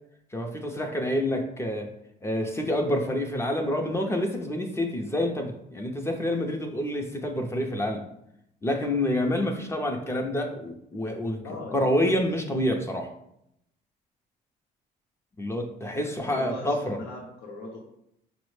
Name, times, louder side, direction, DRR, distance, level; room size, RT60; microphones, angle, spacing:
voice 1, 0.3-1.9 2.2-8.0 8.6-11.4 11.7-13.1 15.4-17.0, left 1 dB, 15° left, 3 dB, 0.5 m, -27 dB
voice 2, 11.4-11.9 16.0-17.8, left 2 dB, 85° left, -1 dB, 0.7 m, -40 dB
5.5 x 2.0 x 3.1 m, 0.78 s
cardioid pair, 110°, 17 cm